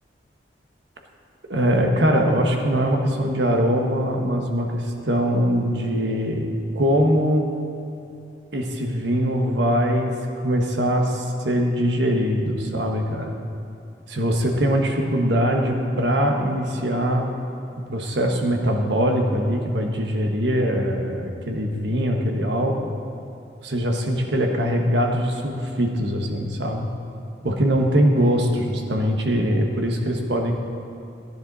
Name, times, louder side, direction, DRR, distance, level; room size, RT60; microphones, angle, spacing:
voice 1, 1.5-6.5 6.7-7.4 8.5-10.1 10.4-13.3 14.1-17.3 17.9-22.9 23.6-26.9 27.4-30.5, equal, 75° right, 2 dB, 1.4 m, -22 dB
15.5 x 10.5 x 4.1 m, 2.8 s
head